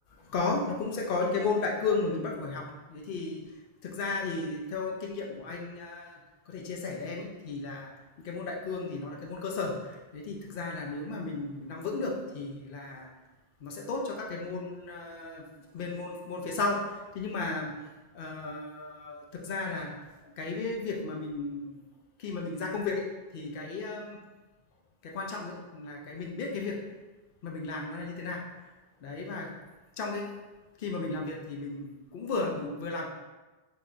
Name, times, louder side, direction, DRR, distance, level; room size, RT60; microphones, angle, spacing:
voice 1, 0.2-3.4 3.8-6.2 6.5-7.9 8.2-13.1 13.6-15.4 15.7-17.7 18.1-19.9 20.4-21.7 22.2-23.0 23.3-24.2 25.0-26.8 27.4-28.4 29.0-29.5 30.0-30.3 30.8-33.1, left 3 dB, 65° left, 0 dB, 0.8 m, -34 dB
3.6 x 3.3 x 2.5 m, 1.2 s
omnidirectional pair, 1.0 m